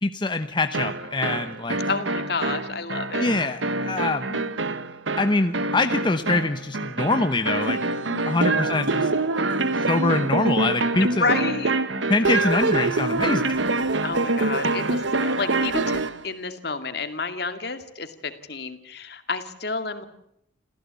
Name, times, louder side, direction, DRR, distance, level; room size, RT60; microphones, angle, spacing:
voice 1, 0.0-1.8 3.2-4.2 5.2-7.8 8.2-9.1 9.9-11.2 12.1-13.5, left 2 dB, 25° left, 8 dB, 0.9 m, -24 dB
sound 1, 0.7-16.2, right 3 dB, 90° right, 1.4 m, -25 dB
voice 2, 1.9-3.3 4.1-4.8 8.1-9.1 10.9-11.8 12.2-12.9 14.0-20.1, left 4 dB, 60° left, 8 dB, 2.4 m, -31 dB
28.0 x 15.5 x 8.4 m, 0.74 s
head